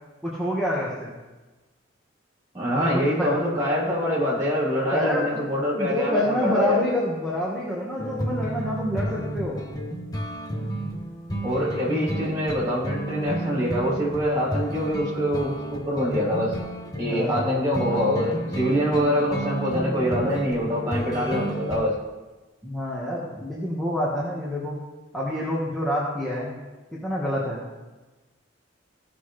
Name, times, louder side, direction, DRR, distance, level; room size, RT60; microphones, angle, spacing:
voice 1, 0.2-1.1 2.7-3.4 4.9-5.4 5.7-9.6 17.0-17.4 22.6-24.8 25.1-26.6 26.9-27.6, equal, ahead, -7 dB, 1.4 m, -27 dB
voice 2, 2.5-6.8 11.4-16.5 17.0-21.9, equal, 20° right, -6 dB, 3.3 m, -25 dB
sound 1, 8.0-21.8, right 1 dB, 20° left, 0.9 m, -31 dB
16.5 x 5.9 x 3.3 m, 1.2 s
head